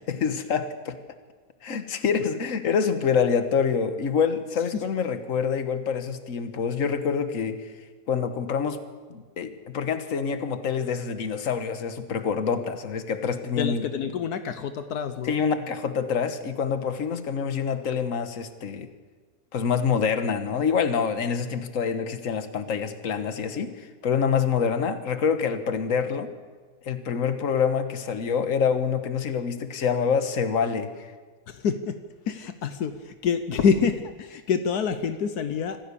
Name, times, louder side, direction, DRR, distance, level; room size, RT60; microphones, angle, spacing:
voice 1, 0.1-1.0 1.6-7.7 8.1-8.8 9.1-13.8 15.2-18.9 19.5-26.3 26.8-31.1, left 6 dB, 55° left, 9 dB, 1.6 m, -26 dB
voice 2, 13.5-15.4 31.5-35.8, left 6 dB, 80° left, 9 dB, 1.5 m, -27 dB
26.0 x 15.0 x 7.0 m, 1.5 s
omnidirectional pair, 1.6 m